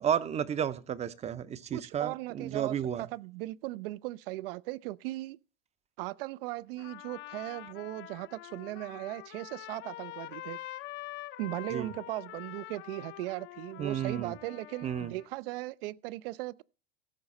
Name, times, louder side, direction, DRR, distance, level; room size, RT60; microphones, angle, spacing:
voice 1, 0.0-3.1 11.7-11.9 13.8-14.3 14.8-15.1, right 9 dB, 20° right, 0.6 m, -32 dB
voice 2, 1.7-5.4 6.0-10.6 11.4-16.6, right 18 dB, 70° right, 0.5 m, -38 dB
Trumpet, 6.8-15.3, left 15 dB, 40° left, 0.5 m, -45 dB
15.5 x 6.3 x 4.2 m
hypercardioid pair, 110°, 30 cm